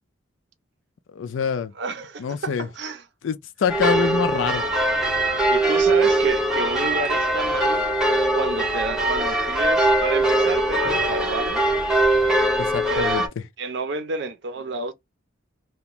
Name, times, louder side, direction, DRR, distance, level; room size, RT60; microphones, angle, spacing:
voice 1, 1.1-1.7 2.2-2.7 3.2-4.6 12.6-13.2, left 6 dB, 75° left, 0.4 m, -25 dB
voice 2, 1.8-3.0 5.5-7.9 8.3-11.6 12.9-13.2 13.6-14.9, right 4 dB, 60° right, 0.5 m, -30 dB
sound 1, 3.7-13.3, right 1 dB, 5° right, 0.6 m, -21 dB
2.4 x 2.2 x 2.9 m
head